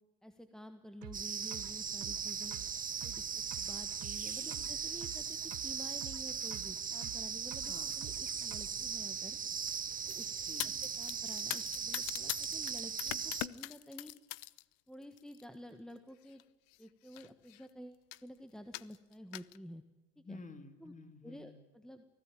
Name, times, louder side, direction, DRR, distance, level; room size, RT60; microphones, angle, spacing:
voice 1, 0.2-2.6 3.0-9.4 10.0-10.3 11.0-14.1 14.9-16.4 16.8-19.8 20.3-20.4 20.8-20.9 21.2-22.0, equal, ahead, 9 dB, 1.5 m, -51 dB
sound 1, 1.0-9.0, right 14 dB, 60° right, 1.3 m, -51 dB
sound 2, 1.1-13.5, right 7 dB, 25° right, 1.1 m, -39 dB
voice 2, 4.4-4.8 7.7-8.0 10.4-10.9 20.2-21.6, left 3 dB, 20° left, 10 dB, 3.0 m, -52 dB
sound 3, 10.1-14.6 15.0-15.4 16.3-16.4 16.7-16.8 17.1-17.6 18.1-18.3 18.7-19.6, left 21 dB, 70° left, 0.8 m, -42 dB
24.5 x 17.0 x 9.2 m, 1.1 s
supercardioid pair, 105°, 35 cm